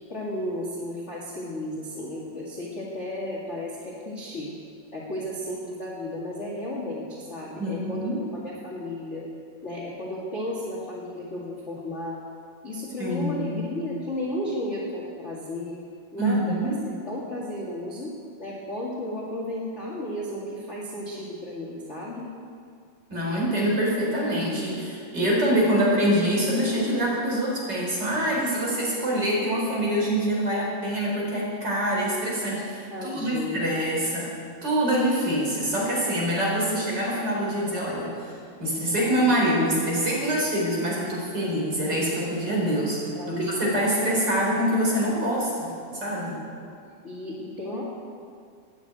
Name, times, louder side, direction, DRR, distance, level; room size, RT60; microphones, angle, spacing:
voice 1, 0.1-4.5 4.9-9.2 9.6-12.2 12.6-15.8 16.1-16.7 17.0-18.1 18.4-22.3 32.9-33.7 43.1-44.3 46.5-46.7 47.0-47.8, left 1 dB, 30° left, -5 dB, 1.5 m, -34 dB
voice 2, 7.6-8.2 13.0-13.7 16.2-16.8 23.1-34.4 34.6-45.7 46.0-46.4, right 1 dB, 25° right, -4 dB, 4.9 m, -25 dB
14.5 x 10.0 x 9.2 m, 2.3 s
omnidirectional pair, 4.4 m